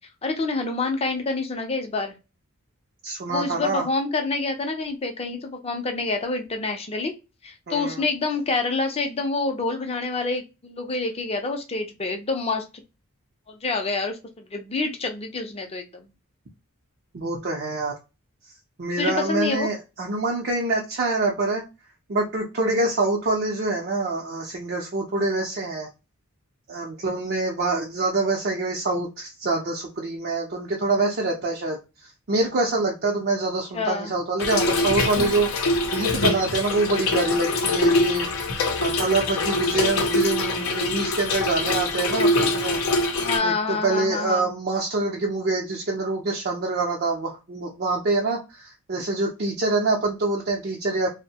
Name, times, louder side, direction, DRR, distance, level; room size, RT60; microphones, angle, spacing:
voice 1, 0.2-2.1 3.3-7.1 7.4-12.6 13.5-16.1 19.0-19.7 33.7-34.1 39.7-40.1 43.2-44.5, left 3 dB, 30° left, 5 dB, 0.5 m, -27 dB
voice 2, 3.0-3.9 7.7-8.0 17.1-17.9 18.8-21.6 22.1-25.9 26.7-42.8 43.4-51.1, right 3 dB, 50° right, -1 dB, 0.6 m, -25 dB
Trickle dribble / Fill (with liquid), 34.4-43.4, left 2 dB, 80° left, 0.5 m, -24 dB
2.6 x 2.0 x 2.8 m, 0.28 s
head